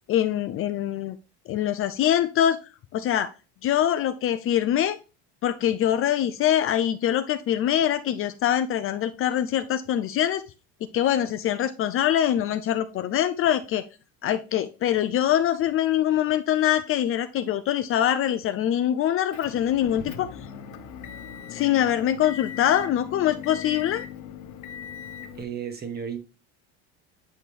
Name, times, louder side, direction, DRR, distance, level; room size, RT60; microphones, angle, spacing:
voice 1, 0.1-1.2 1.5-2.6 2.9-3.3 3.6-5.0 5.4-10.4 10.9-13.8 14.2-20.3 21.5-24.0, left 11 dB, 40° left, 0.5 m, -24 dB
Motor vehicle (road) / Engine, 19.3-25.4, left 8 dB, 60° left, 1.1 m, -39 dB
voice 2, 25.4-26.3, right 7 dB, 30° right, 1.5 m, -33 dB
9.0 x 4.3 x 3.3 m
supercardioid pair, 115°, 34 cm